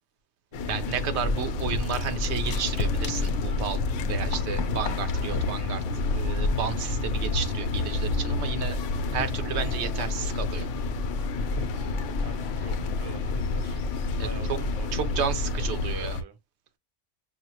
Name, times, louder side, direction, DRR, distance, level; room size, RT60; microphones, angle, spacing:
sound 1, 0.5-16.2, left 3 dB, 85° left, 0.9 m, -30 dB
sound 2, 0.5-15.9, left 3 dB, 15° left, 0.8 m, -34 dB
voice 1, 0.7-5.8 6.1-8.8 9.1-10.7 14.2-14.6 14.9-16.2, right 8 dB, 70° right, 0.8 m, -32 dB
voice 2, 11.5-11.9 12.2-13.8 14.2-15.1 16.0-16.4, right 3 dB, 30° right, 0.5 m, -45 dB
5.9 x 2.0 x 2.9 m
omnidirectional pair, 1.2 m